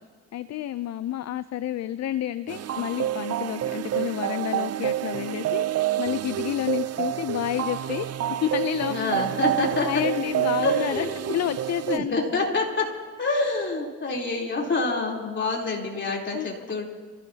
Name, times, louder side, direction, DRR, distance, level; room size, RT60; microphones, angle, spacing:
voice 1, 0.3-8.1 8.4-9.2 9.9-12.2 16.3-16.5, left 12 dB, 60° left, 13 dB, 0.5 m, -30 dB
sound 1, 2.5-12.0, right 12 dB, 55° right, 0.5 m, -28 dB
voice 2, 8.9-10.0 10.6-11.1 11.9-12.9 13.2-16.9, left 3 dB, 35° left, -1 dB, 3.6 m, -26 dB
27.0 x 15.5 x 2.8 m, 1.5 s
cardioid pair, 85°, 31 cm